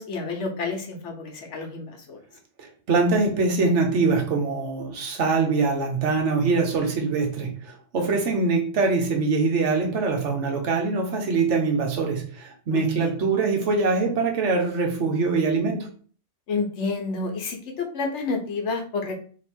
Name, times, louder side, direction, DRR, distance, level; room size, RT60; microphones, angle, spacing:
voice 1, 0.0-2.2 12.7-13.1 16.5-19.1, left 3 dB, 75° left, 1.2 m, -30 dB
voice 2, 2.6-15.9, right 4 dB, 70° right, 1.2 m, -23 dB
3.1 x 2.9 x 4.3 m
omnidirectional pair, 1.2 m